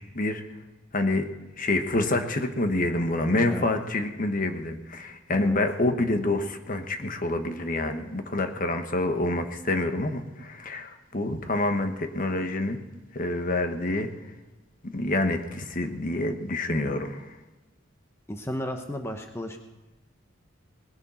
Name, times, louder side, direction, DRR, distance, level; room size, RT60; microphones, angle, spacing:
voice 1, 0.9-1.2 1.6-12.8 13.1-14.1 14.8-17.2, left 2 dB, 45° left, 6 dB, 1.2 m, -27 dB
voice 2, 18.3-19.6, equal, 15° left, 5 dB, 0.9 m, -34 dB
19.5 x 11.0 x 4.3 m, 1.2 s
head